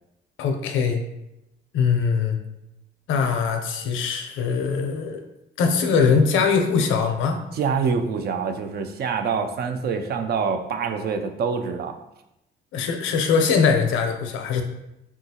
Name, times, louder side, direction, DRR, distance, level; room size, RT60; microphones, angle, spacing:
voice 1, 0.4-1.0 1.7-2.4 3.1-5.2 5.6-7.4 12.7-14.6, left 5 dB, 80° left, 5 dB, 0.5 m, -21 dB
voice 2, 7.5-12.0, right 5 dB, 55° right, 7 dB, 0.4 m, -25 dB
3.6 x 2.3 x 2.7 m, 0.88 s
cardioid pair, 90°, 20 cm